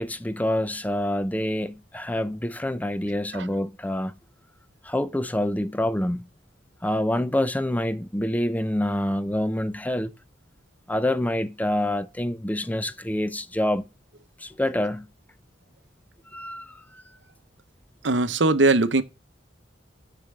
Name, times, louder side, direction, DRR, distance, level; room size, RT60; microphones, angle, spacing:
voice 1, 0.0-4.1 4.8-6.3 6.8-10.1 10.9-13.8 14.4-15.1 16.3-17.0, left 1 dB, 10° left, 0.6 m, -26 dB
voice 2, 18.0-19.0, right 2 dB, 70° right, 0.9 m, -20 dB
6.9 x 5.9 x 6.5 m
head